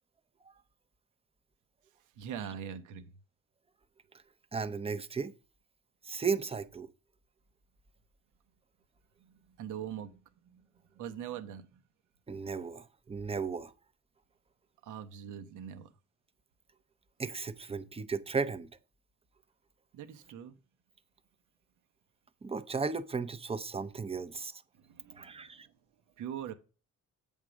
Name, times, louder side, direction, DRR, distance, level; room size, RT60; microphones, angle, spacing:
voice 1, 2.2-3.1 9.2-10.6 10.9-11.8 14.8-15.9 19.9-20.5 24.8-25.7 26.2-26.5, right 9 dB, 80° right, 1.0 m, -42 dB
voice 2, 4.5-5.3 6.0-6.9 12.3-13.7 17.2-18.7 22.4-24.5 25.1-25.7, right 5 dB, 20° right, 0.6 m, -35 dB
8.1 x 3.6 x 6.2 m
cardioid pair, 90°, 30 cm